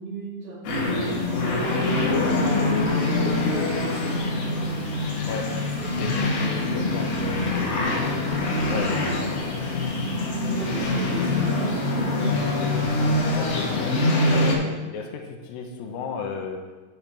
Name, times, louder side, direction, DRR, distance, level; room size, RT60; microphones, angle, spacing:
voice 1, 0.0-4.8 5.8-7.7 8.5-9.0 10.5-12.5, right 3 dB, 80° right, -13 dB, 4.9 m, -38 dB
sound 1, 0.6-14.6, left 2 dB, 70° left, 2.8 m, -24 dB
voice 2, 6.0-7.1 8.7-8.9 11.0-11.4 13.3-14.0 14.2-16.7, left 5 dB, 85° left, 2 dB, 2.1 m, -33 dB
10.5 x 5.9 x 3.3 m, 1.3 s
omnidirectional pair, 5.2 m